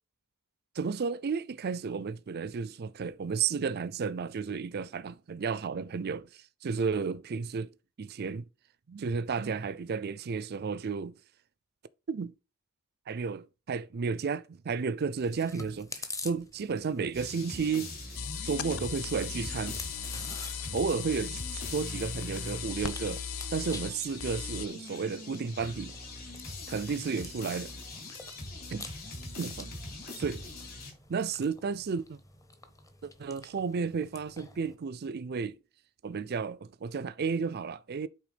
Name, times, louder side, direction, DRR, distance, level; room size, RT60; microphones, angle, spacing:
voice 1, 0.8-6.3 6.6-7.7 8.0-8.4 8.9-11.1 12.1-12.4 13.1-18.0 18.4-19.8 20.7-23.2 23.5-26.0 26.7-27.7 28.7-28.9 29.4-29.7 30.2-30.4 31.1-32.2 33.0-35.6 36.0-38.1, right 5 dB, 45° right, 0.4 m, -32 dB
Chewing mastication, 15.2-34.8, left 2 dB, 15° left, 0.8 m, -49 dB
sound 1, 17.1-30.9, left 2 dB, 45° left, 3.1 m, -43 dB
sound 2, 18.1-24.7, left 6 dB, 70° left, 0.5 m, -38 dB
8.5 x 3.5 x 5.0 m
head